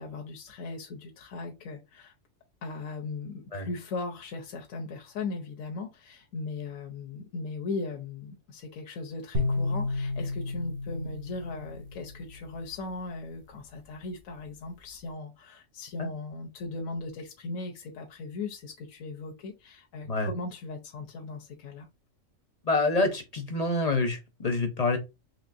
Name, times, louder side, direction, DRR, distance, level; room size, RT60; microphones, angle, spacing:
voice 1, 0.0-2.1 2.6-21.9, left 3 dB, 80° left, 1.1 m, -38 dB
sound 1, 9.3-12.6, left 2 dB, 50° right, 1.0 m, -32 dB
voice 2, 22.7-25.0, left 2 dB, 40° left, 0.6 m, -27 dB
4.4 x 3.2 x 2.5 m
omnidirectional pair, 1.4 m